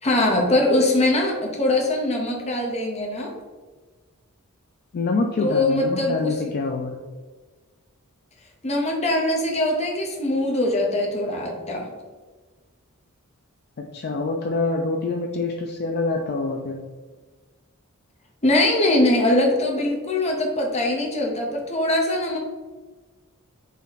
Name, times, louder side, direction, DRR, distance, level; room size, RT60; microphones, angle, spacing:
voice 1, 0.0-3.3 5.4-6.3 8.6-11.9 18.4-22.4, left 1 dB, 30° left, 0 dB, 0.9 m, -22 dB
voice 2, 4.9-6.9 13.8-16.8, left 3 dB, 45° left, 2 dB, 0.4 m, -25 dB
4.1 x 3.0 x 4.0 m, 1.4 s
head